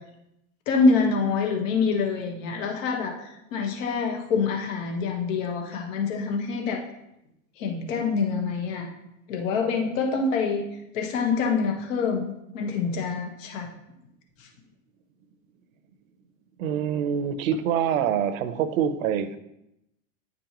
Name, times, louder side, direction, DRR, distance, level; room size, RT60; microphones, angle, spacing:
voice 1, 0.7-6.8 7.6-8.9 9.3-10.6 10.9-13.7 14.4-14.5, left 4 dB, 70° left, 3 dB, 1.4 m, -26 dB
voice 2, 16.6-19.4, right 8 dB, 80° right, 11 dB, 0.8 m, -25 dB
9.8 x 5.2 x 3.0 m, 0.84 s
supercardioid pair, 130°, 40 cm